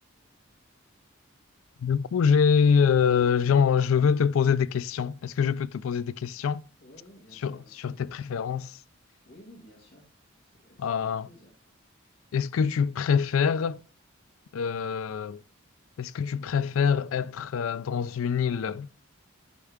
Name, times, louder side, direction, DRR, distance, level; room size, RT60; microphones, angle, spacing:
voice 1, 1.8-6.6 7.4-7.6 7.8-8.8 10.8-11.3 12.3-13.8 14.5-15.4 16.0-18.9, left 6 dB, 85° left, 0.4 m, -25 dB
voice 2, 6.8-8.2 9.2-10.0 10.4-11.5, equal, 50° left, 2.1 m, -54 dB
10.5 x 4.4 x 3.6 m
head